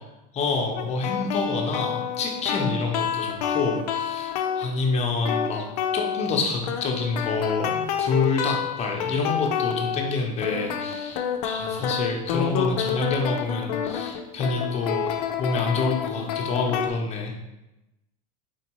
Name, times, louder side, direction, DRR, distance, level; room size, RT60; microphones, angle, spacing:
voice 1, 0.3-5.6 5.9-17.3, left 4 dB, 30° left, 1 dB, 0.9 m, -27 dB
sound 1, 0.8-4.7 5.2-6.4 6.7-10.2 10.4-16.9, left 8 dB, 75° left, 0.5 m, -28 dB
4.5 x 2.8 x 3.0 m, 0.96 s
supercardioid pair, 110°, 21 cm